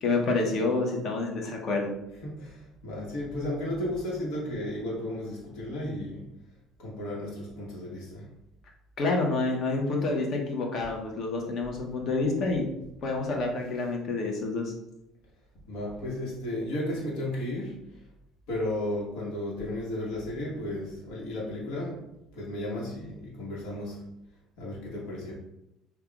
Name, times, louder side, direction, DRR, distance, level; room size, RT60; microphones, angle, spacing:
voice 1, 0.0-1.9 9.0-12.6 13.0-14.7, left 3 dB, 40° left, 1 dB, 0.8 m, -28 dB
voice 2, 2.2-6.3 6.8-8.3 15.7-18.1 18.5-22.0 22.3-24.1 24.6-25.3, left 1 dB, 75° left, -5 dB, 1.1 m, -34 dB
5.5 x 2.3 x 2.4 m, 0.86 s
cardioid pair, 155°, 0 cm